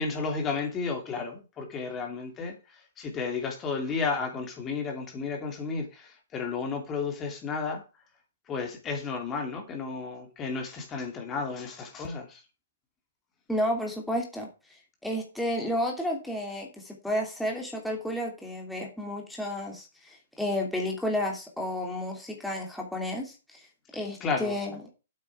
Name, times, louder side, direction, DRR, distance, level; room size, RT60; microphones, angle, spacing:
voice 1, 0.0-2.6 3.0-7.8 8.5-12.4 24.2-24.6, left 4 dB, 20° left, 3 dB, 2.8 m, -32 dB
voice 2, 13.5-14.5 15.0-23.7 23.9-24.8, left 1 dB, ahead, -1 dB, 2.8 m, -31 dB
8.8 x 8.6 x 4.8 m, 0.30 s
hypercardioid pair, 140°, 0 cm